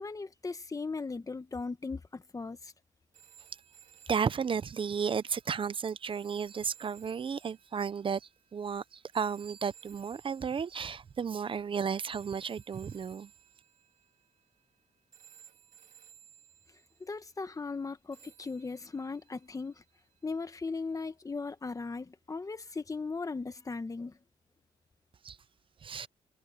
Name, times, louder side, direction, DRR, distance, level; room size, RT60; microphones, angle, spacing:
voice 1, 0.0-2.7 17.0-19.8 20.2-24.1, left 4 dB, 25° left, 1.3 m, -38 dB
sound 1, 3.1-11.3 12.1-14.8 15.1-17.2 18.1-20.4 21.5-21.6, right 8 dB, 85° right, 2.7 m, -59 dB
voice 2, 4.1-8.2 8.5-13.3 25.2-25.4 25.8-26.1, right 6 dB, 40° right, 0.6 m, -33 dB
cardioid pair, 110°, 13 cm